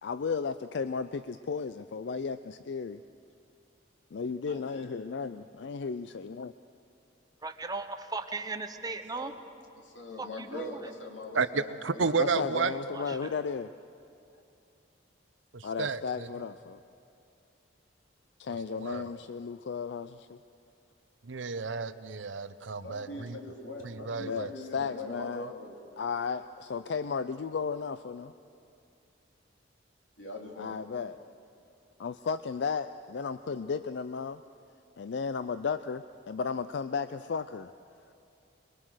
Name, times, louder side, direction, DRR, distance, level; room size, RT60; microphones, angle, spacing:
voice 1, 0.0-3.0 4.1-6.5 12.2-13.7 15.6-16.8 18.4-20.4 24.2-25.5 26.0-28.3 30.6-31.2 32.0-34.4 35.0-37.7, left 5 dB, 65° left, 13 dB, 0.4 m, -34 dB
voice 2, 4.5-5.0 9.1-9.4 9.7-12.9 22.8-25.8 30.2-30.8, left 1 dB, 85° left, 1 dB, 2.6 m, -42 dB
voice 3, 7.4-9.3 10.2-10.8 12.9-13.2, right 3 dB, 20° right, 8 dB, 0.9 m, -37 dB
voice 4, 11.3-12.7 15.5-16.3 18.5-19.1 21.2-23.4 23.8-24.5, right 5 dB, 80° right, 13 dB, 0.8 m, -32 dB
22.5 x 22.5 x 6.4 m, 2.6 s
head